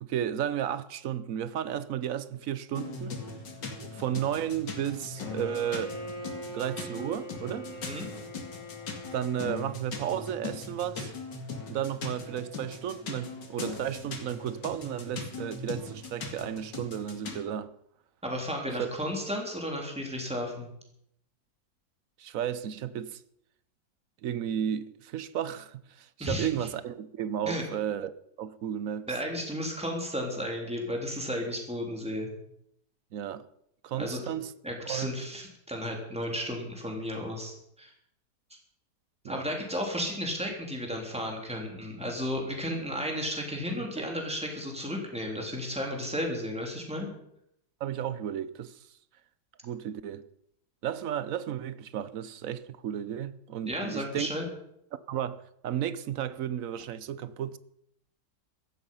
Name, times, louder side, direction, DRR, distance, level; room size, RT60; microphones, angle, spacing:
voice 1, 0.0-3.2 3.8-6.0 6.5-7.7 9.1-11.1 11.7-17.7 18.8-18.9 22.2-23.2 24.2-28.1 28.4-29.1 33.1-33.4 33.8-34.5 34.9-35.1 39.2-39.4 44.0-44.1 47.8-48.8 49.6-50.2 50.8-54.3 55.1-57.6, right 10 dB, 60° right, 1.0 m, -33 dB
sound 1, 2.7-17.4, left 4 dB, 90° left, 2.7 m, -40 dB
Bowed string instrument, 5.1-9.9, equal, 25° left, 2.9 m, -42 dB
voice 2, 18.2-20.7 26.2-26.5 27.5-27.6 29.1-32.3 34.0-34.2 34.6-37.9 39.3-47.1 53.6-54.5, equal, 5° right, 3.4 m, -33 dB
15.5 x 13.5 x 5.6 m
omnidirectional pair, 1.8 m